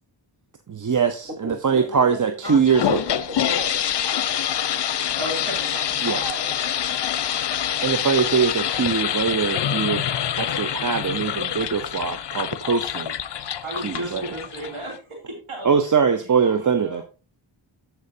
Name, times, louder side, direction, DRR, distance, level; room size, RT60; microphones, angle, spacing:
voice 1, 0.7-3.0 6.0-6.2 7.8-13.5 13.8-14.3 15.6-17.0, right 6 dB, 40° right, 8 dB, 0.8 m, -22 dB
voice 2, 1.4-3.9 6.1-6.8, right 1 dB, 20° right, 1 dB, 3.7 m, -35 dB
sound 1, 2.4-15.0, left 9 dB, 60° left, 0.6 m, -26 dB
voice 3, 5.1-6.1 13.6-17.0, right 1 dB, 75° right, 0 dB, 3.0 m, -35 dB
13.0 x 4.8 x 2.7 m, 0.33 s
cardioid pair, 55°, 49 cm